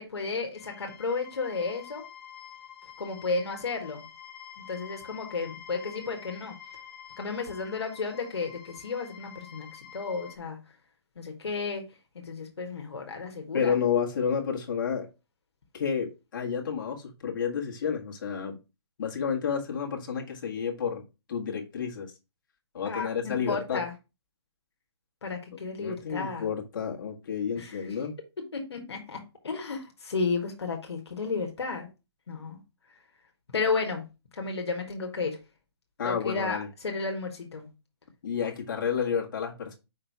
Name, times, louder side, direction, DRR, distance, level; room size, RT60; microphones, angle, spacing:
voice 1, 0.0-2.0 3.0-4.0 4.7-6.6 7.2-10.6 11.2-11.8 12.1-13.7 22.8-23.9 25.2-26.5 27.6-27.9 28.5-31.9 32.3-32.6 33.5-34.0 34.3-35.4 36.0-37.7, left 4 dB, 75° left, 1.5 m, -33 dB
sound 1, 0.5-10.4, left 8 dB, 35° left, 1.3 m, -48 dB
voice 2, 13.5-15.1 15.7-18.6 19.0-21.0 21.3-22.1 22.7-23.8 25.5-28.2 36.0-36.7 38.2-39.7, left 7 dB, 50° left, 1.7 m, -30 dB
5.4 x 3.9 x 4.6 m
hypercardioid pair, 145°, 14 cm